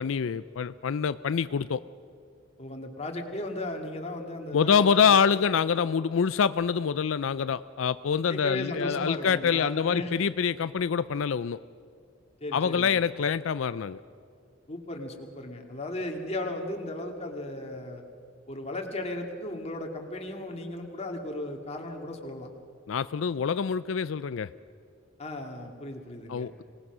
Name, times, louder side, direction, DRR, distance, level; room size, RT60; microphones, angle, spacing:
voice 1, 0.0-1.8 4.5-11.6 12.5-14.0 22.9-24.5 26.3-26.6, left 6 dB, 90° left, 14 dB, 0.4 m, -25 dB
voice 2, 2.6-5.2 8.3-10.1 12.4-13.0 14.7-18.0 18.5-22.5 25.2-26.5, left 1 dB, 35° left, 2 dB, 2.4 m, -36 dB
25.0 x 19.0 x 6.1 m, 2.3 s
head